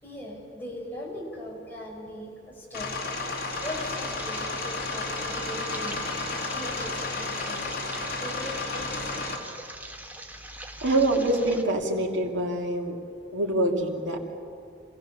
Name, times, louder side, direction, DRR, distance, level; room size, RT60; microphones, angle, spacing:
voice 1, 0.0-2.9 3.6-6.0 6.5-7.7 8.2-9.1 10.5-10.6, left 1 dB, 10° left, -3 dB, 5.2 m, -40 dB
sound 1, 2.7-9.4, left 3 dB, 55° left, 2.8 m, -32 dB
sound 2, 3.5-11.6, right 1 dB, 10° right, 1.3 m, -42 dB
voice 2, 10.8-13.0 13.3-14.2, right 1 dB, 85° right, 0 dB, 2.8 m, -25 dB
26.5 x 16.0 x 7.1 m, 2.5 s
head